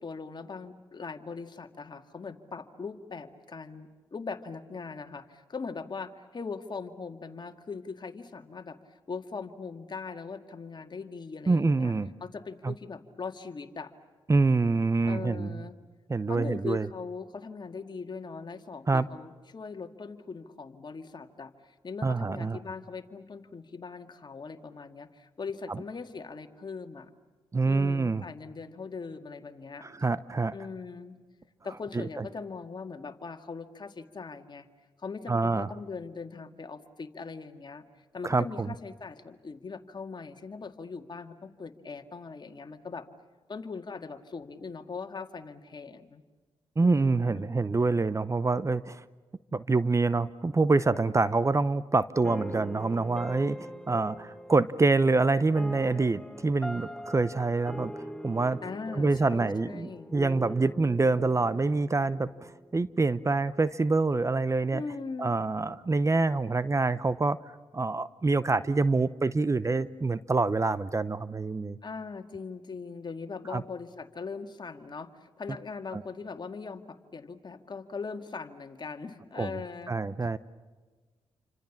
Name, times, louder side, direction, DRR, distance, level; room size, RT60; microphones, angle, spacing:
voice 1, 0.0-11.9 12.2-13.9 15.0-15.8 16.3-27.1 27.6-29.9 30.5-31.2 31.6-34.7 35.0-37.8 38.1-43.1 43.5-46.2 46.8-47.5 58.6-60.2 64.7-65.4 71.8-80.0, left 4 dB, 45° left, 7 dB, 2.0 m, -40 dB
voice 2, 11.5-12.1 12.6-12.7 14.3-15.6 16.1-16.9 18.9-19.1 22.0-22.6 27.5-28.2 29.8-30.5 31.9-32.3 35.3-35.7 38.2-38.7 46.8-49.0 49.5-57.9 58.2-58.6 59.0-62.3 62.7-64.8 65.2-67.4 67.7-71.8 73.5-73.6 75.9-76.0 79.4-79.5 79.9-80.4, right 3 dB, 25° right, 16 dB, 0.8 m, -26 dB
sound 1, 52.2-63.3, equal, 5° left, 0.8 m, -43 dB
29.0 x 25.5 x 7.3 m, 1.4 s
supercardioid pair, 50°, 11 cm